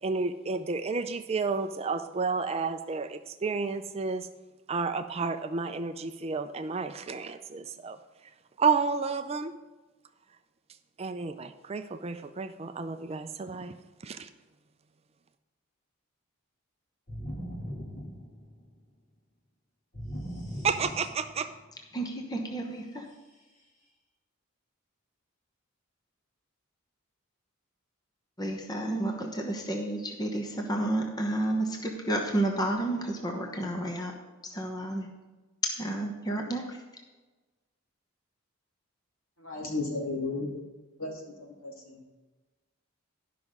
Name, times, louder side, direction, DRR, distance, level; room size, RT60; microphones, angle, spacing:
voice 1, 0.0-4.3 4.7-8.0 8.6-9.5 11.0-13.7 14.0-14.3 20.6-21.5, right 4 dB, 30° right, 9 dB, 0.4 m, -31 dB
sound 1, 17.1-18.8 19.9-21.6, equal, 35° left, 1.6 m, -39 dB
voice 2, 21.9-23.1 28.4-34.1 34.4-35.1 35.6-36.8, right 1 dB, 20° left, 2 dB, 1.0 m, -31 dB
voice 3, 39.4-40.5 41.0-42.2, left 3 dB, 75° left, -1 dB, 2.6 m, -35 dB
12.0 x 5.9 x 5.3 m, 1.2 s
head